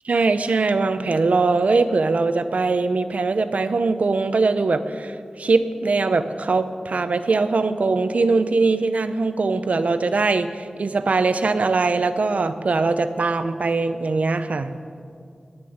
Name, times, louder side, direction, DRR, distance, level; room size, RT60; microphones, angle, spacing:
voice 1, 0.1-14.7, right 3 dB, 75° right, 10 dB, 0.7 m, -21 dB
11.0 x 10.5 x 8.8 m, 2.3 s
wide cardioid pair, 80°, 2 cm